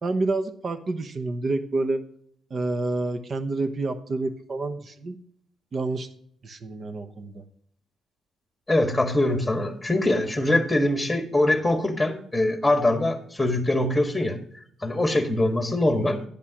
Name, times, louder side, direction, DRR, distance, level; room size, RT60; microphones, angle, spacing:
voice 1, 0.0-2.0 2.5-5.2 5.7-6.1 6.4-7.4, right 2 dB, 45° right, 10 dB, 1.1 m, -28 dB
voice 2, 8.7-14.4 14.8-16.2, left 1 dB, 5° left, 5 dB, 1.7 m, -23 dB
10.5 x 10.0 x 3.0 m, 0.64 s
cardioid pair, 90°, 0 cm